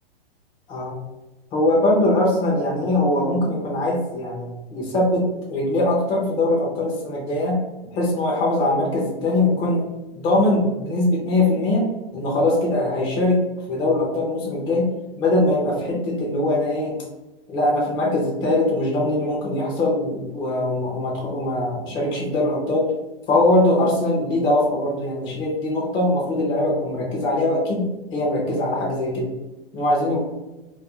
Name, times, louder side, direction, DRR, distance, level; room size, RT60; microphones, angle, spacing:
voice 1, 1.5-5.2 5.5-7.6 7.9-9.8 10.2-11.9 12.1-13.4 13.7-14.9 15.2-16.9 17.5-22.9 23.3-29.3 29.7-30.2, left 1 dB, 15° left, -4 dB, 0.4 m, -21 dB
2.3 x 2.2 x 2.8 m, 1.1 s
hypercardioid pair, 130°, 31 cm